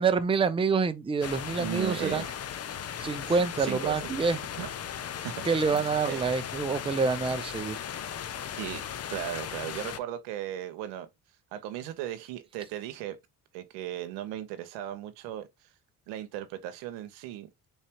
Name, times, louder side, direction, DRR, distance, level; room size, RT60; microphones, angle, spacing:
voice 1, 0.0-2.2 3.0-4.4 5.4-7.8, right 5 dB, 15° right, 0.5 m, -27 dB
sound 1, 1.2-10.0, left 9 dB, 35° left, 0.5 m, -37 dB
voice 2, 1.6-2.4 3.3-4.1 4.6-4.7 5.2-6.2 7.2-7.3 8.6-11.1 11.5-13.2 13.5-15.5 16.1-17.5, right 12 dB, 90° right, 0.7 m, -37 dB
3.7 x 3.2 x 2.9 m
supercardioid pair, 70°, 42 cm